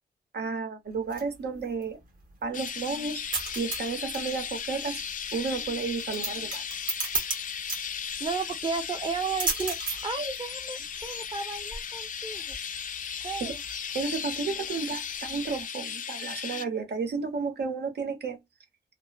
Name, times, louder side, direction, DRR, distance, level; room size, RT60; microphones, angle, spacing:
voice 1, 0.3-2.0 2.4-5.0 5.3-6.6 13.4-13.5 13.9-18.4, right 5 dB, 75° right, 0.8 m, -32 dB
sound 1, 0.9-15.6, right 3 dB, 55° right, 1.2 m, -38 dB
Chirp tweet, 2.5-16.6, left 7 dB, 50° left, 0.4 m, -36 dB
voice 2, 8.2-12.6 13.2-13.6, right 5 dB, 30° right, 0.7 m, -33 dB
2.9 x 2.1 x 2.2 m
wide cardioid pair, 125°, 17 cm